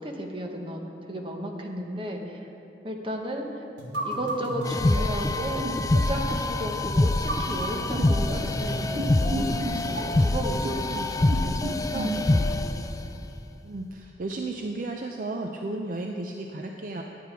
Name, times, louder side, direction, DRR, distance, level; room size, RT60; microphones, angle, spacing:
voice 1, 0.0-2.5 2.8-3.6 4.0-12.6, equal, 30° right, 2 dB, 1.0 m, -34 dB
sound 1, 3.8-12.3, equal, 90° right, 1.6 m, -33 dB
sound 2, 4.6-12.9, left 2 dB, 20° left, 0.3 m, -26 dB
voice 2, 13.6-17.0, right 2 dB, 50° right, 2 dB, 0.5 m, -33 dB
11.0 x 8.4 x 4.6 m, 2.8 s
head